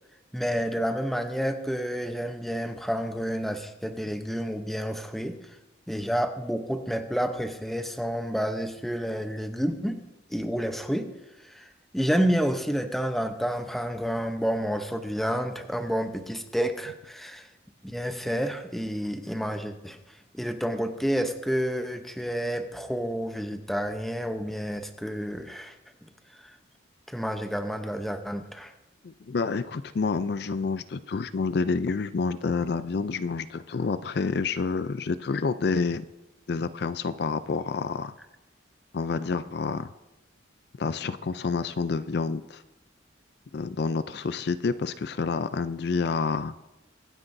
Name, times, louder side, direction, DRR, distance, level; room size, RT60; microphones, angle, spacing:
voice 1, 0.3-5.4 5.9-10.0 10.3-11.1 11.4-11.7 11.9-17.5 17.8-20.0 20.3-25.7 26.4-26.5 27.1-28.7, equal, ahead, 6 dB, 0.7 m, -29 dB
voice 2, 29.0-36.0 36.5-38.1 38.9-39.9 40.8-42.6 43.5-46.5, left 4 dB, 55° left, 13 dB, 0.4 m, -28 dB
24.5 x 9.7 x 2.6 m, 0.99 s
head